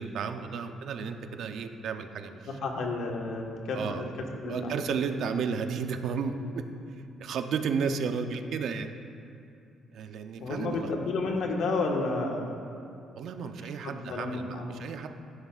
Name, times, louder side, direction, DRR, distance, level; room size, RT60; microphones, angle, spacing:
voice 1, 0.0-2.5 3.7-4.0 4.5-6.6 7.2-8.9 9.9-10.9 13.2-15.1, right 6 dB, 65° right, 7 dB, 0.7 m, -33 dB
voice 2, 2.5-4.8 7.1-7.2 10.4-12.6 13.8-14.8, left 3 dB, 70° left, 0 dB, 1.5 m, -31 dB
16.0 x 11.5 x 2.5 m, 2.7 s
cardioid pair, 135°, 0 cm